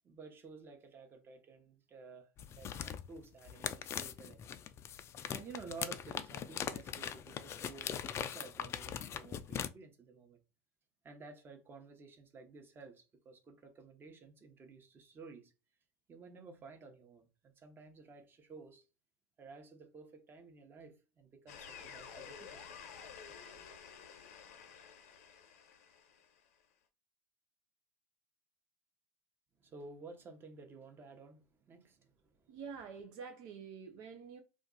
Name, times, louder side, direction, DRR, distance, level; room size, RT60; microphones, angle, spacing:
voice 1, 0.0-2.3 2.5-4.4 5.3-10.4 11.0-15.5 16.1-18.8 19.4-22.6 29.6-32.5, right 4 dB, 30° right, 0.9 m, -53 dB
sound 1, 2.4-9.7, left 9 dB, 35° left, 0.4 m, -41 dB
sound 2, 21.5-26.4, left 7 dB, 75° left, 0.7 m, -52 dB
voice 2, 32.5-34.4, right 6 dB, 60° right, 0.5 m, -47 dB
2.5 x 2.3 x 3.8 m
hypercardioid pair, 95°, 8 cm